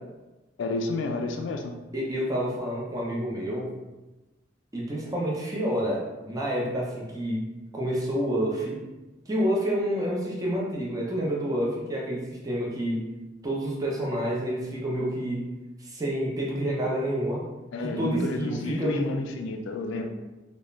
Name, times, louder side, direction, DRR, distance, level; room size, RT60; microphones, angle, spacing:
voice 1, 0.6-1.8 17.7-20.1, left 3 dB, 85° left, 4 dB, 0.3 m, -30 dB
voice 2, 1.9-3.7 4.7-7.4 7.7-8.8 9.3-13.1 13.4-15.4 15.8-17.4 17.8-19.2, equal, 20° right, -4 dB, 0.5 m, -28 dB
2.3 x 2.1 x 3.0 m, 1.1 s
head